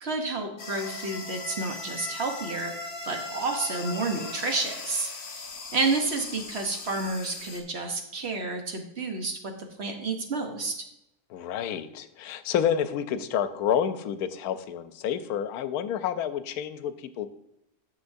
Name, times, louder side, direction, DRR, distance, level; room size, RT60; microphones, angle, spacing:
voice 1, 0.0-2.7 3.0-5.5 5.7-9.5 9.8-10.8, right 3 dB, 50° right, 3 dB, 1.1 m, -30 dB
sound 1, 0.6-7.6, left 3 dB, 65° left, 1.5 m, -38 dB
voice 2, 11.3-17.3, left 9 dB, 90° left, 12 dB, 1.1 m, -29 dB
10.0 x 7.1 x 2.6 m, 0.81 s
omnidirectional pair, 1.6 m